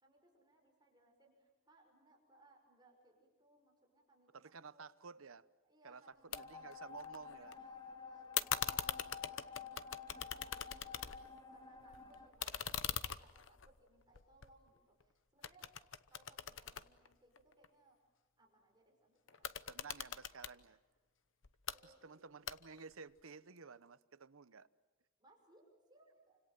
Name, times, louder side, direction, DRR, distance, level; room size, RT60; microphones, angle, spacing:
voice 1, 0.0-4.4 4.7-4.9 5.6-6.3 6.5-7.1 7.4-9.4 9.7-10.9 11.5-15.7 16.1-18.0 18.4-20.0 21.7-22.2 25.2-26.4, right 2 dB, 20° right, 5.8 m, -68 dB
voice 2, 4.3-5.5 5.8-7.5 19.7-20.8 21.8-24.7, right 5 dB, 85° right, 0.9 m, -54 dB
sound 1, 6.3-6.4 6.7-7.5 8.3-11.4 11.8-15.0 15.4-17.7 19.3-20.6 21.4-21.8 22.5-22.9, left 9 dB, 65° left, 1.0 m, -42 dB
sound 2, 6.3-12.3, left 6 dB, 20° left, 2.4 m, -51 dB
29.0 x 26.0 x 7.7 m
head